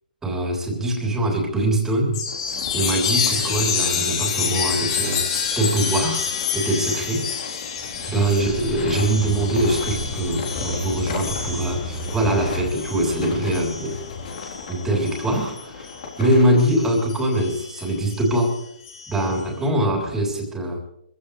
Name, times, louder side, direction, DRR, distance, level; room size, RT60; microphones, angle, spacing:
voice 1, 0.2-2.2 2.7-5.3 5.6-6.3 6.5-7.3 8.1-14.0 14.4-18.6 19.1-20.8, right 1 dB, 10° right, 0 dB, 3.8 m, -23 dB
Chime, 2.1-16.1 16.6-19.4, left 6 dB, 40° left, 3.9 m, -29 dB
sound 1, 2.3-16.6, left 5 dB, 60° left, 3.9 m, -36 dB
sound 2, 7.7-12.7, left 1 dB, 20° left, 3.1 m, -33 dB
24.5 x 16.0 x 3.4 m, 0.74 s
hypercardioid pair, 145°, 5 cm